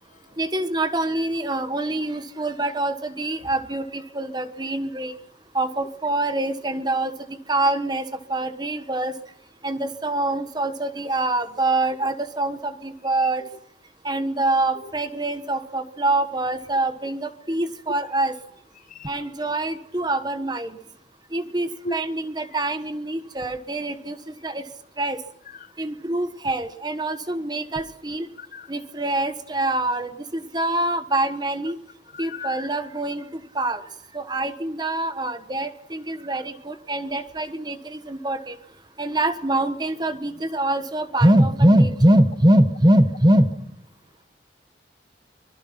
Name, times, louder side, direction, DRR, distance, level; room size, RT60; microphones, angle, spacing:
voice 1, 0.4-5.1 5.5-7.1 7.5-8.0 8.3-9.1 9.6-13.4 14.0-18.3 19.0-20.8 21.3-24.6 25.0-25.2 25.8-28.3 28.7-31.8 32.2-33.8 34.1-38.6 39.0-43.4, right 1 dB, 25° right, 10 dB, 1.3 m, -24 dB
voice 2, 28.4-28.7 32.1-32.7, left 3 dB, 45° left, 14 dB, 0.8 m, -36 dB
24.5 x 20.5 x 5.9 m, 0.74 s
head